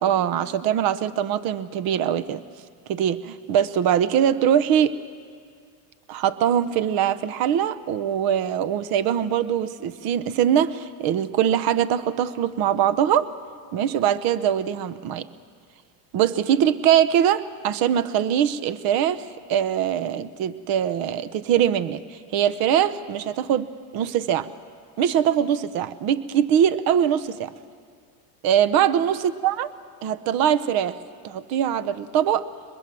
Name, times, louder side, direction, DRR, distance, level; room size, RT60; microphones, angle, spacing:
voice 1, 0.0-2.4 2.9-5.0 6.1-13.3 13.7-15.3 16.1-23.7 23.9-24.5 25.0-27.5 28.4-29.7 30.0-31.0 31.2-32.5, right 9 dB, 50° right, 15 dB, 1.0 m, -22 dB
23.0 x 20.5 x 7.7 m, 2.1 s
supercardioid pair, 115°, 45 cm